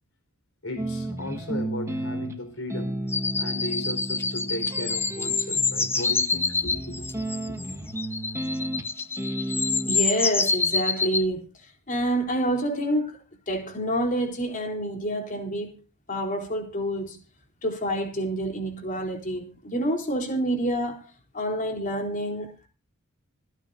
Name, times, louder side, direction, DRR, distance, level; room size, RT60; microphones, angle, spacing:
voice 1, 0.6-2.9 3.4-7.2, left 2 dB, 70° left, 4.7 m, -36 dB
sound 1, 0.8-10.0, right 1 dB, 15° right, 1.3 m, -33 dB
sound 2, 3.1-11.2, left 4 dB, 10° left, 0.6 m, -27 dB
voice 2, 9.8-11.5 11.9-13.2 13.5-15.8 16.1-17.2 17.6-21.0 21.3-22.7, right 1 dB, 40° left, 3.9 m, -28 dB
26.5 x 9.6 x 2.6 m
head